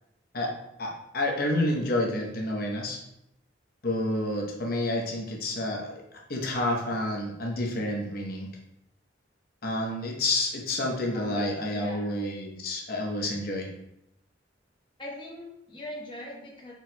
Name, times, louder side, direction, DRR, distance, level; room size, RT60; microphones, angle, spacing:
voice 1, 0.8-3.0 3.8-6.0 6.3-8.5 9.6-13.7, left 1 dB, 50° left, 0 dB, 0.9 m, -29 dB
voice 2, 11.1-12.1 15.0-16.7, left 1 dB, 25° left, -3 dB, 1.0 m, -41 dB
4.4 x 4.3 x 2.2 m, 0.82 s
head